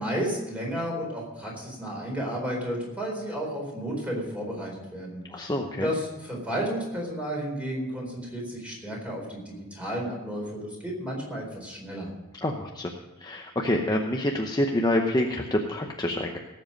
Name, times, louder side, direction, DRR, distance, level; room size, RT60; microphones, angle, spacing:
voice 1, 0.0-12.1, equal, 5° right, -1 dB, 4.2 m, -32 dB
voice 2, 5.3-5.9 12.4-12.9 13.2-16.4, left 1 dB, 20° left, 2 dB, 0.8 m, -27 dB
18.0 x 7.8 x 5.3 m, 1.1 s
head